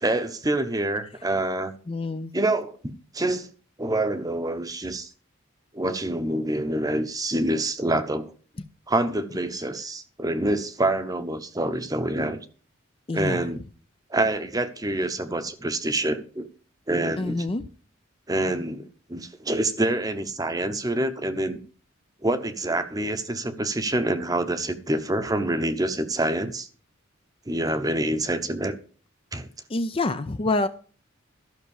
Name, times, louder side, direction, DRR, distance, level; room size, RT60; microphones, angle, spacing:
voice 1, 0.0-1.7 2.3-3.5 3.8-5.1 5.7-8.3 8.9-12.4 13.1-13.6 14.1-16.5 16.9-17.5 18.3-21.6 22.2-26.7 27.5-28.8 29.3-29.5, right 1 dB, 15° right, 0.9 m, -26 dB
voice 2, 1.9-2.3 13.1-13.5 17.2-17.6 29.7-30.7, left 2 dB, 25° left, 0.5 m, -26 dB
12.5 x 6.1 x 7.1 m
head